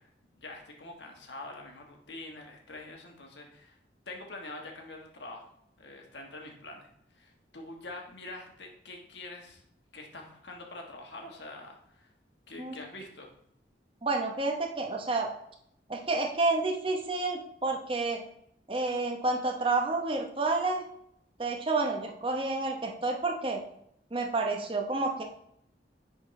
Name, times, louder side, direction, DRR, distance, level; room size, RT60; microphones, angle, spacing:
voice 1, 0.0-3.8 4.1-5.5 5.8-6.9 7.1-9.6 9.9-12.1 12.5-13.3, left 2 dB, 80° left, 1 dB, 1.4 m, -45 dB
voice 2, 14.0-15.3 15.9-18.2 18.7-20.8 21.4-23.6 24.1-25.2, right 3 dB, 30° right, 2 dB, 0.9 m, -29 dB
9.7 x 4.2 x 3.2 m, 0.73 s
head